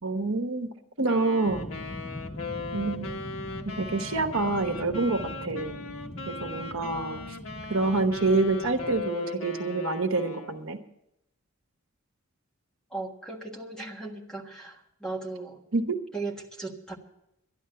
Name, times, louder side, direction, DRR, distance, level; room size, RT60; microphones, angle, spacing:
voice 1, 0.0-0.7 1.0-1.7 2.7-3.1 3.6-5.8 6.3-7.2 7.7-10.8 15.7-16.0, right 3 dB, 70° right, 6 dB, 1.1 m, -27 dB
Wind instrument woodwind instrument, 1.1-10.6, left 3 dB, 75° left, 1.3 m, -39 dB
sound 1, 1.4-9.1, left 1 dB, 20° left, 0.5 m, -42 dB
voice 2, 12.9-15.6 16.1-17.0, right 3 dB, 5° left, 0 dB, 1.6 m, -37 dB
12.5 x 11.0 x 6.8 m, 0.82 s
head